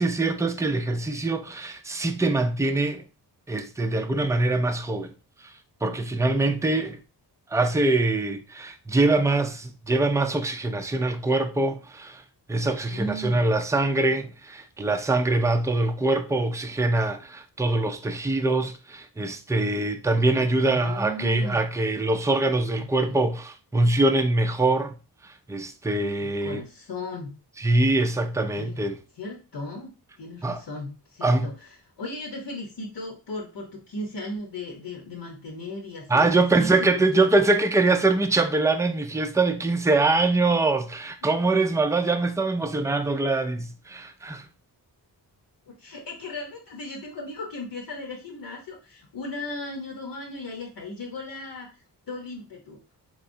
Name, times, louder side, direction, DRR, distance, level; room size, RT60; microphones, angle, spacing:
voice 1, 0.0-3.0 3.5-5.1 5.8-7.0 7.5-12.2 12.5-24.9 25.5-26.6 27.6-29.0 30.4-30.6 31.2-31.5 36.1-44.4, right 2 dB, 10° right, 0.3 m, -23 dB
voice 2, 6.6-6.9 12.9-13.4 20.3-21.6 22.8-23.1 26.2-27.3 28.5-28.8 29.2-29.9 30.2-31.7 32.0-37.3 41.2-41.3 45.7-51.7 52.1-52.8, left 2 dB, 75° left, 1.0 m, -36 dB
3.9 x 3.3 x 2.6 m
wide cardioid pair, 105°, 40 cm